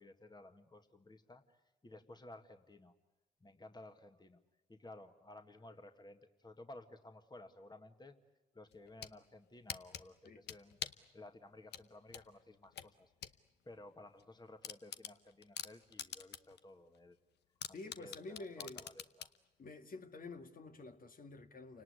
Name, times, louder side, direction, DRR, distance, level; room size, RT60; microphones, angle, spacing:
voice 1, 0.0-1.6 1.8-2.9 3.4-4.4 4.7-8.1 8.5-10.8 11.1-13.1 13.6-17.2 18.0-19.3, left 2 dB, 25° left, 1.8 m, -55 dB
sound 1, 8.7-9.2 9.7-11.1 11.7-13.4 13.7-13.8 14.2-14.3 14.6-16.6 16.9-17.0 17.6-19.4, left 10 dB, 80° left, 0.9 m, -45 dB
voice 2, 17.7-18.8 19.6-21.8, left 3 dB, 55° left, 1.9 m, -49 dB
29.0 x 18.5 x 9.7 m
supercardioid pair, 55°, 17 cm